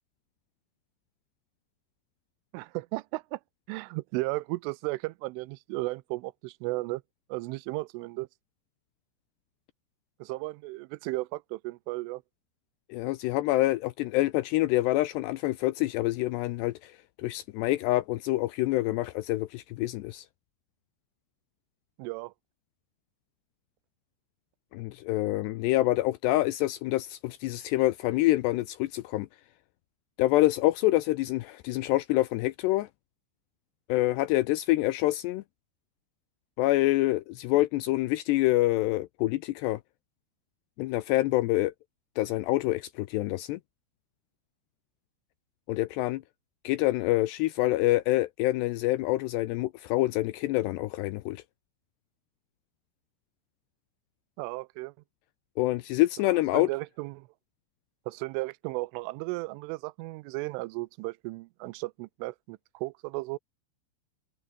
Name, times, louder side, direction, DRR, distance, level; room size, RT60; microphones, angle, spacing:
voice 1, 2.5-3.4 3.7-7.0 7.3-8.3 10.2-12.2 22.0-22.3 54.4-54.9 56.5-57.3 58.1-63.4, right 23 dB, 90° right, 3.2 m, -35 dB
voice 2, 12.9-20.2 24.7-29.3 30.2-32.9 33.9-35.4 36.6-39.8 40.8-41.7 42.2-43.6 45.7-46.2 46.6-51.4 55.6-56.7, left 17 dB, 85° left, 2.5 m, -26 dB
omnidirectional pair, 5.6 m